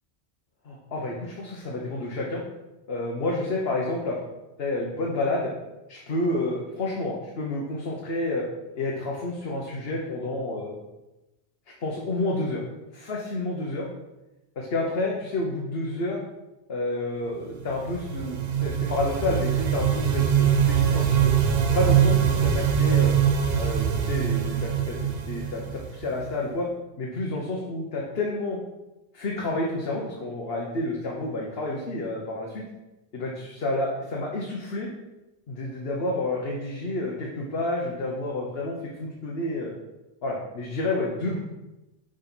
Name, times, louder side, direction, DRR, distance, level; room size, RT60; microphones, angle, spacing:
voice 1, 0.6-2.4 2.9-4.2 4.6-5.5 5.9-8.4 8.7-10.8 11.8-12.6 12.9-13.9 14.5-16.2 16.7-21.3 21.7-23.1 23.5-25.0 25.3-26.7 27.0-28.6 29.1-32.6 33.1-34.9 35.5-39.7 40.2-41.4, left 2 dB, 75° left, -2 dB, 1.3 m, -29 dB
sound 1, 17.6-26.4, right 8 dB, 70° right, 1.0 m, -23 dB
6.3 x 5.1 x 6.0 m, 1.0 s
omnidirectional pair, 1.0 m